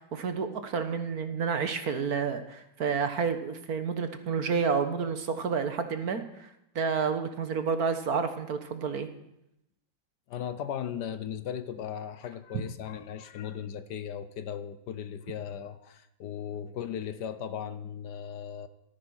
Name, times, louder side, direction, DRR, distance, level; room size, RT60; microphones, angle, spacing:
voice 1, 0.0-6.5 6.7-9.1 12.5-12.6, right 5 dB, 55° right, 9 dB, 1.6 m, -30 dB
voice 2, 10.3-18.7, left 9 dB, 65° left, 13 dB, 1.3 m, -37 dB
13.5 x 13.0 x 6.3 m, 0.83 s
omnidirectional pair, 2.0 m